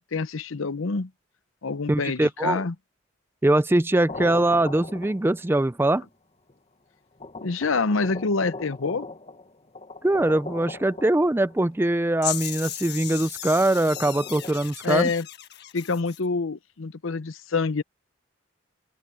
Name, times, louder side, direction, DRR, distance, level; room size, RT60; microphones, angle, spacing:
voice 1, 0.1-1.1 1.6-2.7 7.4-9.1 14.8-15.3 15.7-17.8, left 4 dB, 75° left, 0.8 m, -26 dB
voice 2, 1.9-2.6 3.4-6.0 10.0-15.1, right 1 dB, 10° right, 0.4 m, -22 dB
sound 1, 4.1-5.6 6.5-6.6 7.2-11.7 13.5-14.6, left 2 dB, 30° left, 1.2 m, -39 dB
sound 2, 12.2-16.2, left 12 dB, 55° left, 1.6 m, -35 dB
head